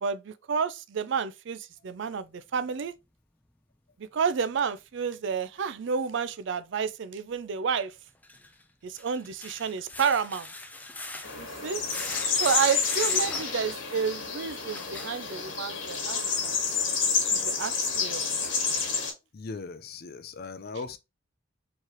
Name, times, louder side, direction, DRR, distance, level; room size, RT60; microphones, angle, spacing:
voice 1, 0.0-2.9 4.0-7.9 8.8-10.5 11.4-11.8 12.4-16.6 17.3-18.3, right 6 dB, 65° right, 0.4 m, -30 dB
sound 1, 5.6-5.7 8.1-15.7 16.3-16.4 16.9-17.0, left 2 dB, 10° left, 0.5 m, -41 dB
sound 2, 11.2-19.1, left 5 dB, 70° left, 1.7 m, -29 dB
voice 2, 19.3-21.0, left 4 dB, 50° left, 0.5 m, -38 dB
4.6 x 3.2 x 3.0 m
head